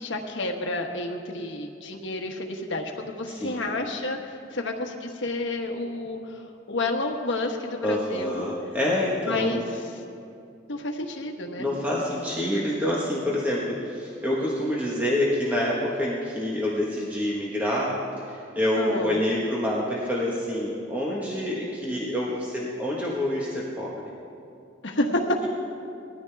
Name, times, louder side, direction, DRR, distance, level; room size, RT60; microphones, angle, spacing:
voice 1, 0.0-4.2 4.5-8.4 9.3-10.0 10.7-11.7 18.8-19.2 24.8-25.4, left 2 dB, 70° left, 2 dB, 1.3 m, -30 dB
voice 2, 3.3-3.7 7.8-9.6 11.6-17.9 18.3-23.9, left 1 dB, 10° right, -6 dB, 1.4 m, -27 dB
19.5 x 13.5 x 3.5 m, 2.6 s
head